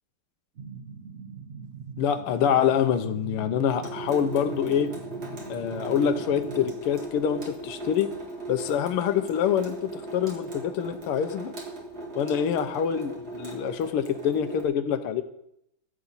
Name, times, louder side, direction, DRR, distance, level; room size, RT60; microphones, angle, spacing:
sound 1, 0.6-6.7, right 5 dB, 65° right, 0.6 m, -42 dB
voice 1, 2.0-4.9 5.5-8.1 8.5-11.5 12.2-15.2, left 8 dB, 85° left, 9 dB, 1.7 m, -26 dB
Water tap faucet / Sink (filling or washing) / Drip, 3.8-14.6, right 1 dB, 45° right, 2.3 m, -38 dB
14.5 x 7.9 x 4.1 m, 0.78 s
omnidirectional pair, 2.4 m